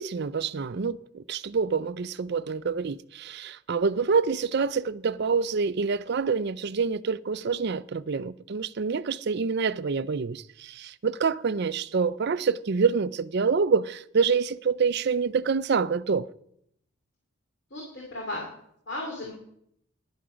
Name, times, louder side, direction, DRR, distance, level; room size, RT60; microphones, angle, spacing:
voice 1, 0.0-16.3, right 5 dB, 50° right, 0.4 m, -27 dB
voice 2, 17.7-18.5 18.9-19.3, left 2 dB, 55° left, 2.7 m, -35 dB
13.5 x 11.0 x 5.1 m
head